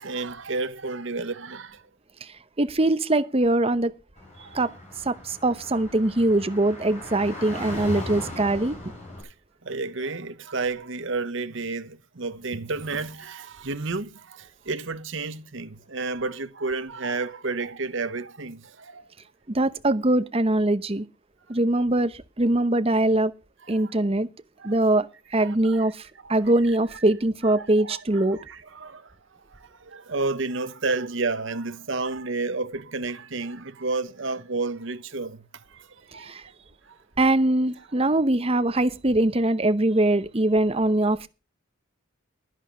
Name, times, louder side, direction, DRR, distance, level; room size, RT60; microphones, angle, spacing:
voice 1, 0.0-1.8 4.4-4.6 9.2-9.3 9.6-19.1 23.6-24.1 24.6-24.8 25.3-27.0 27.4-29.1 29.5-36.4 36.8-37.0, right 3 dB, 60° right, 1.0 m, -32 dB
voice 2, 2.6-3.9 4.5-4.7 5.1-8.8 19.5-21.0 21.5-22.1 22.4-23.3 23.7-24.3 24.6-25.1 25.3-25.9 26.3-28.4 36.3-36.4 37.2-41.3, right 1 dB, 25° right, 0.8 m, -22 dB
Car / Traffic noise roadway noise, 4.2-9.2, left 1 dB, 35° left, 7.2 m, -38 dB
11.0 x 10.5 x 5.6 m
head